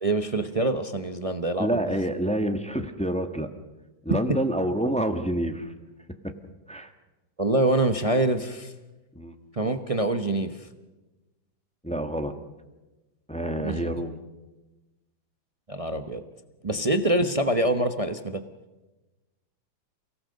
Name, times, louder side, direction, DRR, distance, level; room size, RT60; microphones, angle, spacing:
voice 1, 0.0-1.8 4.3-4.4 7.4-8.7 9.5-10.7 13.6-13.9 15.7-16.2 16.6-18.4, right 1 dB, 35° right, 8 dB, 0.5 m, -25 dB
voice 2, 1.6-3.5 4.0-5.7 6.7-6.9 9.1-9.3 11.8-12.3 13.3-14.2, right 1 dB, 5° left, 7 dB, 1.0 m, -27 dB
29.0 x 18.0 x 6.6 m, 1.1 s
omnidirectional pair, 2.1 m